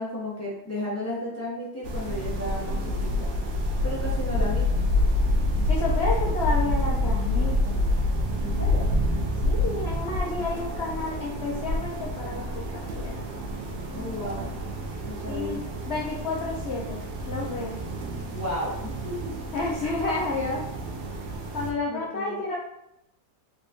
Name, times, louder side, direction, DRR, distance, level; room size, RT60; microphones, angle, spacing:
voice 1, 0.0-3.3 3.8-4.7 8.4-8.9 13.9-14.5 15.1-15.6 18.3-19.4 21.9-22.4, left 1 dB, 20° left, -6 dB, 0.4 m, -33 dB
sound 1, 1.8-21.7, left 1 dB, 75° right, 1.2 m, -28 dB
voice 2, 5.6-7.9 9.4-12.7 12.9-13.2 15.3-17.8 19.5-20.7 21.5-22.6, left 3 dB, 80° left, -2 dB, 0.6 m, -31 dB
3.7 x 3.4 x 2.5 m, 0.83 s
omnidirectional pair, 1.8 m